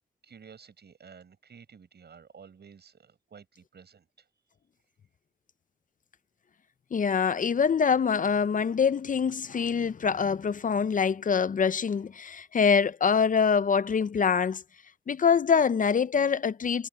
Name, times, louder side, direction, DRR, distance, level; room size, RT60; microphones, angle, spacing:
voice 1, 0.2-4.3, right 6 dB, 70° right, 7.1 m, -52 dB
voice 2, 6.9-14.6 15.1-16.9, left 6 dB, 50° left, 0.5 m, -25 dB
cardioid pair, 65°, 18 cm